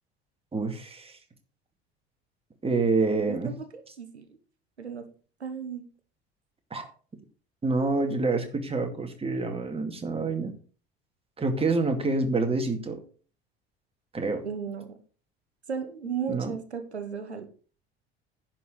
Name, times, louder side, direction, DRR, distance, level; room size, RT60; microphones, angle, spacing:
voice 1, 0.5-1.2 2.6-3.5 6.7-6.9 7.6-10.5 11.4-13.0 14.1-14.4 16.3-16.5, right 3 dB, 20° right, 5 dB, 2.2 m, -27 dB
voice 2, 3.3-3.6 4.0-4.3 4.8-5.1 5.4-5.9 14.4-15.0 15.7-17.5, right 7 dB, 85° right, 8 dB, 1.1 m, -35 dB
10.5 x 4.6 x 7.9 m, 0.40 s
figure-of-eight pair, 65°, 32 cm